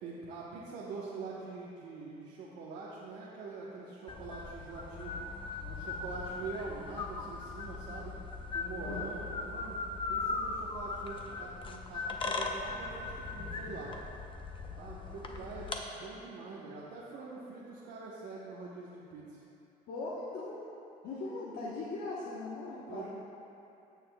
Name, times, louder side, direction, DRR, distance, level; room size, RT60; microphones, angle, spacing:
voice 1, 0.0-5.2 5.6-8.2 8.5-9.8 10.1-13.9 14.8-19.4 22.9-23.1, right 4 dB, 85° right, -6 dB, 1.1 m, -44 dB
sound 1, 4.1-15.8, left 3 dB, 30° left, 0.7 m, -39 dB
voice 2, 8.8-9.3 14.7-15.4 19.9-20.7 21.0-23.1, left 2 dB, 70° left, -6 dB, 1.1 m, -40 dB
16.0 x 6.6 x 2.3 m, 2.8 s
cardioid pair, 110°, 17 cm